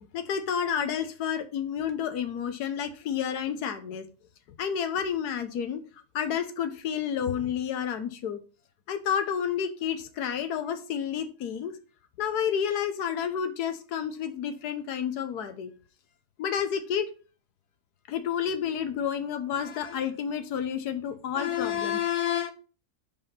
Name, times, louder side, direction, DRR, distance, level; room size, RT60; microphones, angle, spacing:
voice 1, 0.1-4.1 4.6-5.8 6.1-8.4 8.9-11.7 12.2-15.7 16.4-17.1 18.1-22.5, left 8 dB, 85° left, 1.4 m, -30 dB
5.4 x 5.2 x 5.6 m
omnidirectional pair, 1.6 m